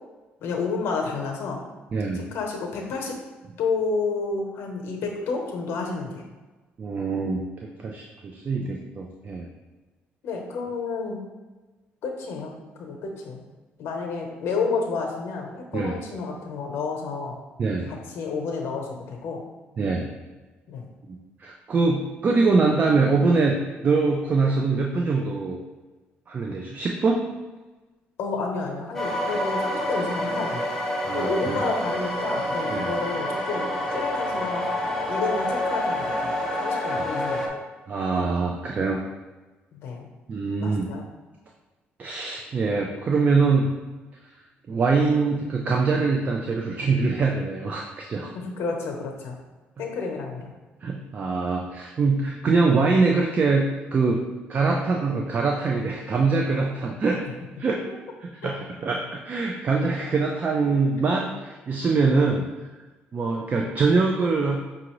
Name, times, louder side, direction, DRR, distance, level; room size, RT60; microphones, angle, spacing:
voice 1, 0.4-1.6 2.1-3.2 3.6-6.2 10.2-11.2 12.0-12.5 12.8-13.4 13.8-17.3 17.9-19.4 20.7-20.9 28.2-30.7 31.1-36.3 36.6-37.4 39.7-40.1 40.6-41.1 48.3-49.4 49.8-50.5 58.4-58.5, left 4 dB, 70° left, 2 dB, 0.9 m, -30 dB
voice 2, 1.9-2.2 6.8-9.5 15.7-16.0 17.6-17.9 19.8-20.1 21.4-25.6 26.3-27.3 31.0-31.6 32.7-32.8 36.9-37.1 37.9-39.0 40.3-41.0 42.0-43.7 44.7-48.3 50.8-57.2 57.6-57.8 58.2-62.5 63.1-64.6, right 4 dB, 35° right, 0 dB, 0.4 m, -23 dB
sound 1, 28.9-37.5, left 1 dB, 5° left, 0.7 m, -27 dB
5.6 x 2.5 x 3.1 m, 1.2 s
cardioid pair, 115°, 4 cm